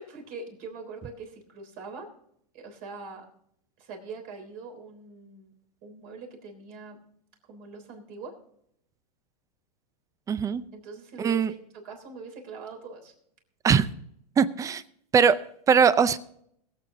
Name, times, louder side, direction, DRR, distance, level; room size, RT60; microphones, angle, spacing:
voice 1, 0.0-2.1 2.5-3.3 3.8-5.5 5.8-7.0 7.5-8.3 10.7-11.6 11.8-13.1, right 4 dB, 45° right, 3 dB, 3.5 m, -42 dB
voice 2, 10.3-10.6 11.2-11.5 13.6-13.9 14.4-14.8 15.1-16.2, right 6 dB, 15° right, 17 dB, 0.5 m, -21 dB
21.5 x 7.8 x 3.7 m, 0.71 s
hypercardioid pair, 130°, 21 cm